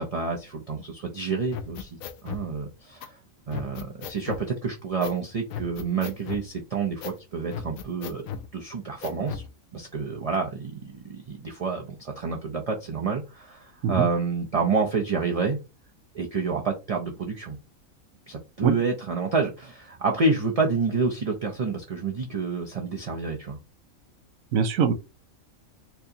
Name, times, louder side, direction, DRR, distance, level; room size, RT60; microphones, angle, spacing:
voice 1, 0.0-3.2 3.5-8.3 8.5-9.4 9.7-15.6 16.1-17.6 18.3-23.6, right 4 dB, 50° right, 0.4 m, -28 dB
sound 1, 1.5-2.5 3.0-3.1 3.5-4.5 5.0-5.2 5.5-6.5 7.0-7.2 7.5-8.5 9.0-9.5, left 8 dB, 85° left, 1.0 m, -36 dB
voice 2, 24.5-24.9, right 6 dB, 90° right, 1.1 m, -22 dB
4.5 x 2.6 x 2.7 m
omnidirectional pair, 1.4 m